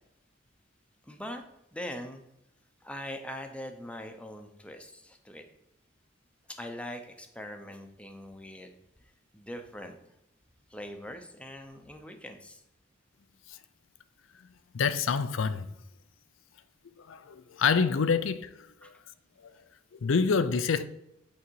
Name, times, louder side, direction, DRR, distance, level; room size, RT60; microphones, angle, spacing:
voice 1, 1.0-1.4 1.7-2.2 2.8-5.4 6.6-8.7 9.3-10.0 10.7-12.6 18.8-18.9, left 1 dB, 5° left, 0.7 m, -42 dB
voice 2, 14.7-15.7 17.1-17.2 17.6-18.5 20.0-20.8, left 5 dB, 85° left, 0.5 m, -26 dB
8.5 x 3.9 x 4.6 m
head